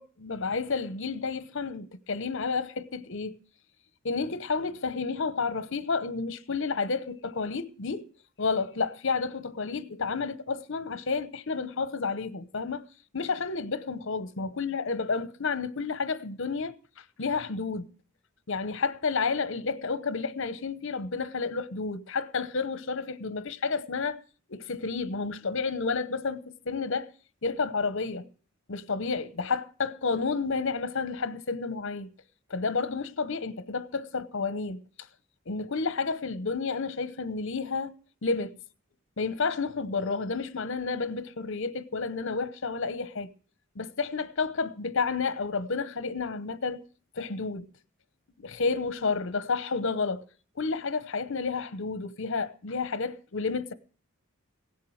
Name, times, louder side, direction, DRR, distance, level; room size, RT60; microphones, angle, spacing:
voice 1, 0.0-3.4 4.0-8.1 8.4-12.9 13.1-17.9 18.5-24.2 24.5-27.1 27.4-28.3 28.7-32.1 32.5-34.8 35.5-37.9 38.2-38.6 39.2-43.3 43.7-46.8 47.2-47.7 48.4-50.2 50.6-53.7, left 4 dB, 65° left, 0.9 m, -31 dB
17.0 x 7.5 x 6.4 m
head